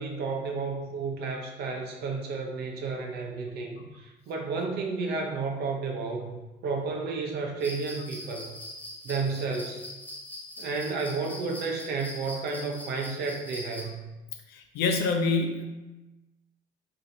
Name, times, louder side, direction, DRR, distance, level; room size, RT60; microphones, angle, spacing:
voice 1, 0.0-8.5 9.0-9.8 10.6-14.0, right 4 dB, 70° right, 2 dB, 0.7 m, -32 dB
sound 1, 7.6-13.8, left 1 dB, 10° left, 0.8 m, -42 dB
voice 2, 14.5-15.7, left 4 dB, 75° left, 4 dB, 0.5 m, -26 dB
2.8 x 2.6 x 4.2 m, 1.1 s
cardioid pair, 110°, 17 cm